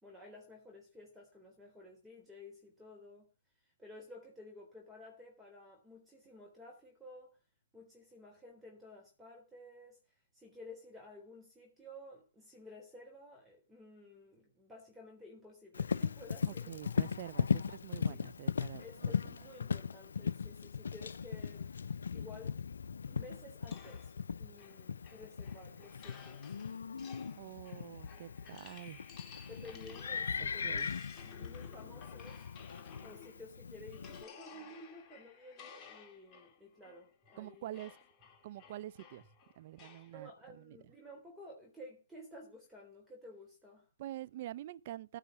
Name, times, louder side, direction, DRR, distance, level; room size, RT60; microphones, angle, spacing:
voice 1, 0.0-3.3 3.6-7.4 7.7-16.8 17.5-17.6 18.1-18.2 18.8-22.6 23.1-26.6 29.5-30.9 31.2-32.5 33.0-37.8 40.1-43.9, left 1 dB, 5° right, 3.5 m, -54 dB
Livestock farm animals working animals, 15.7-34.2, left 6 dB, 75° left, 0.5 m, -38 dB
voice 2, 16.5-19.4 27.3-29.0 30.4-30.9 37.4-37.9 38.4-39.2 39.6-40.8 44.0-45.2, right 14 dB, 45° right, 0.7 m, -46 dB
sound 1, 23.7-33.5 33.9-40.1, left 6 dB, 25° left, 2.6 m, -56 dB
15.0 x 5.6 x 6.0 m
hypercardioid pair, 130°, 0 cm